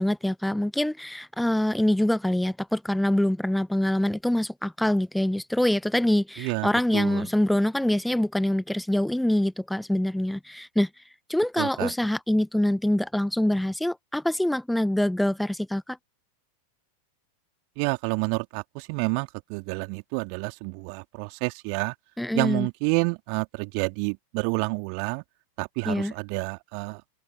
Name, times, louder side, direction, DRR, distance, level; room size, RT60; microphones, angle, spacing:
voice 1, 0.0-11.0 11.3-16.0 22.2-22.7 25.8-26.1, left 1 dB, ahead, 1.2 m, -25 dB
voice 2, 6.4-7.2 11.6-11.9 17.8-21.9 22.3-25.2 25.6-27.0, right 40 dB or more, 45° right, 3.3 m, -29 dB
figure-of-eight pair, 90°, 0 cm